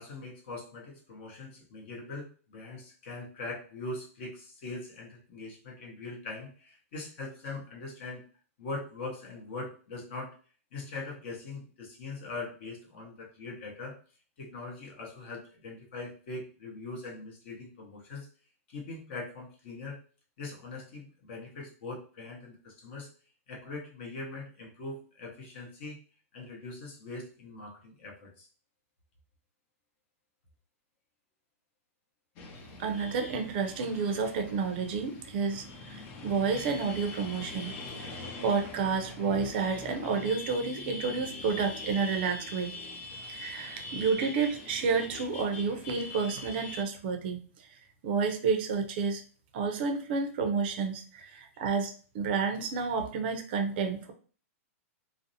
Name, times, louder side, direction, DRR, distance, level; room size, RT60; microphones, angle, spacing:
voice 1, 0.0-8.2 8.6-10.4 10.7-14.0 14.4-18.3 18.7-20.0 20.4-23.1 23.5-26.0 26.3-28.5, left 3 dB, 45° left, -1 dB, 0.9 m, -41 dB
sound 1, 32.4-46.8, left 2 dB, 25° left, 0.3 m, -43 dB
voice 2, 32.8-38.1 38.4-42.7 43.3-47.4 48.0-49.2 49.5-54.1, right 5 dB, 40° right, 5 dB, 0.5 m, -30 dB
2.6 x 2.0 x 2.7 m, 0.40 s
hypercardioid pair, 165°, 8 cm